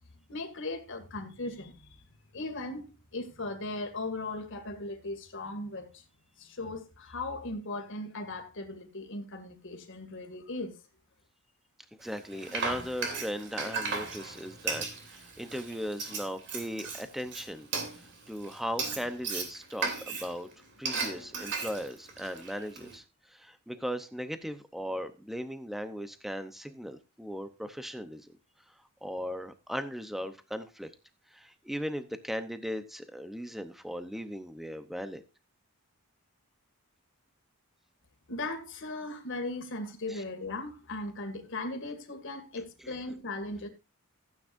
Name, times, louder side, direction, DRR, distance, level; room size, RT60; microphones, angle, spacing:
voice 1, 0.3-2.0 2.3-6.0 6.4-10.7 38.3-43.7, left 2 dB, 55° left, 2.2 m, -38 dB
voice 2, 12.0-17.7 18.0-20.5 20.8-28.3 29.0-30.9 31.3-35.2 40.1-40.2 42.8-43.0, equal, ahead, 0.7 m, -38 dB
Frying (food), 12.0-23.0, right 4 dB, 55° right, 3.0 m, -36 dB
15.5 x 9.0 x 2.6 m
head